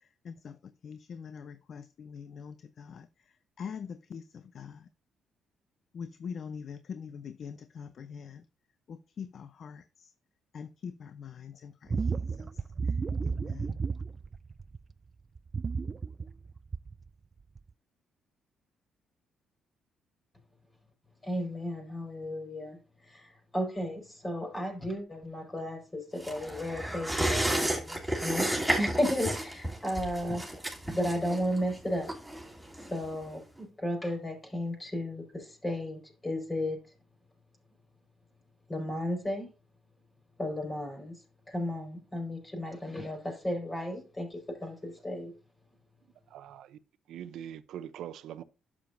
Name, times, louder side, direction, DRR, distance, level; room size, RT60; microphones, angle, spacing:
voice 1, 0.2-3.1 3.6-4.9 5.9-8.4 8.9-10.1 10.5-12.9 13.2-13.8, left 6 dB, 55° left, 0.6 m, -44 dB
sound 1, 11.9-14.9 15.4-17.1 17.6-17.7, right 5 dB, 35° right, 0.3 m, -33 dB
voice 2, 21.2-30.4 30.9-32.1 32.8-36.8 38.7-39.5 40.4-41.1 41.5-45.3, left 1 dB, 20° left, 4.7 m, -34 dB
sound 2, 26.2-33.3 33.6-33.7, right 1 dB, 5° right, 3.0 m, -32 dB
voice 3, 46.3-46.8 47.1-48.4, right 10 dB, 80° right, 0.6 m, -42 dB
11.5 x 7.4 x 2.6 m
cardioid pair, 90°, 0 cm